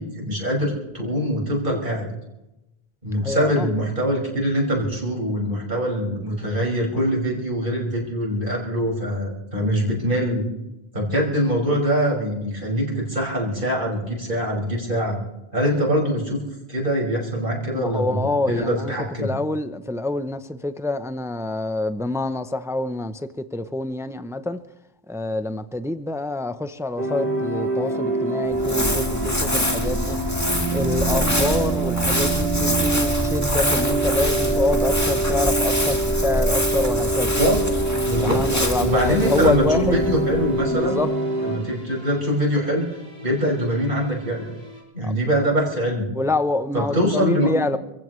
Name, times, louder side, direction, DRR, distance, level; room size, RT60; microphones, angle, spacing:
voice 1, 0.0-2.1 3.0-10.4 10.9-15.2 15.5-16.4 16.7-19.3 37.4-37.6 38.1-38.4 38.8-41.0 41.4-42.8 43.2-44.5 44.9-46.1 46.7-47.5, equal, 55° right, 6.0 m, -23 dB
voice 2, 3.2-3.7 17.7-18.9 19.2-24.6 25.1-30.2 30.7-37.3 38.2-40.1 40.7-41.1 45.0-45.3 46.1-47.8, left 2 dB, 5° right, 0.5 m, -26 dB
sound 1, 27.0-41.6, right 3 dB, 80° right, 4.6 m, -25 dB
Crumpling crinkling, 28.5-41.0, left 1 dB, 15° left, 1.8 m, -25 dB
sound 2, 38.8-44.8, left 1 dB, 40° left, 6.9 m, -47 dB
28.5 x 15.5 x 3.2 m
omnidirectional pair, 1.1 m